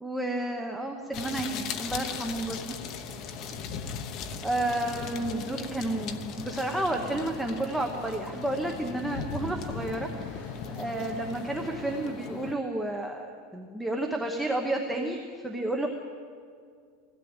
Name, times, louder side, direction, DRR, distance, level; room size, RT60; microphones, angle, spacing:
voice 1, 0.0-2.8 4.4-15.9, right 1 dB, 5° right, 2 dB, 1.0 m, -31 dB
sound 1, 1.1-12.5, left 7 dB, 30° left, 1.0 m, -38 dB
sound 2, 2.4-12.0, left 1 dB, 55° left, 7.2 m, -46 dB
21.5 x 16.5 x 8.9 m, 2.2 s
supercardioid pair, 175°, 0 cm